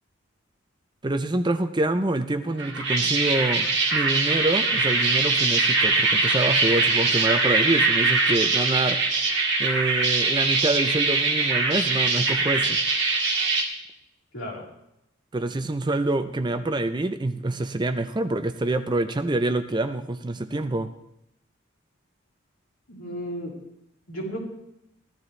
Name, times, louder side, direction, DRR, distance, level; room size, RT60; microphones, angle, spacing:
voice 1, 1.0-9.0 9.6-12.8 15.3-20.9, right 2 dB, 20° right, 10 dB, 0.5 m, -26 dB
sound 1, 2.6-13.6, right 3 dB, 60° right, 2.0 m, -22 dB
voice 2, 14.3-14.6 22.9-23.5 24.1-24.4, equal, 85° left, -4 dB, 3.8 m, -33 dB
15.5 x 12.0 x 3.3 m, 0.83 s
head